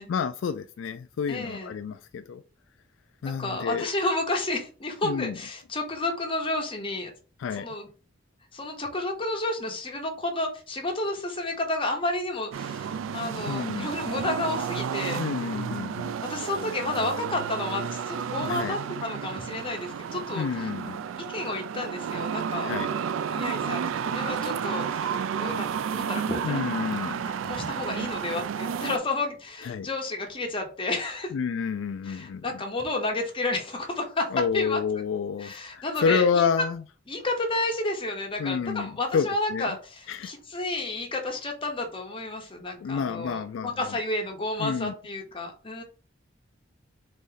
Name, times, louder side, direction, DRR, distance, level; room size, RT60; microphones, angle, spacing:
voice 1, 0.1-2.4 3.2-3.9 5.0-5.3 7.4-7.7 13.5-13.9 15.1-16.2 18.4-18.8 20.4-21.0 22.6-22.9 26.4-27.4 29.6-29.9 31.3-32.4 34.3-36.8 38.4-39.7 40.1-40.3 42.8-43.7 44.6-44.9, left 6 dB, 70° left, 0.3 m, -29 dB
voice 2, 1.3-1.7 3.4-7.1 7.5-7.9 8.5-15.2 16.3-20.7 21.3-22.8 23.3-31.3 32.0-34.8 35.4-36.6 37.1-45.8, left 2 dB, 30° left, 1.1 m, -31 dB
sound 1, 12.5-29.0, right 7 dB, 85° right, 0.3 m, -32 dB
4.0 x 3.1 x 3.9 m
head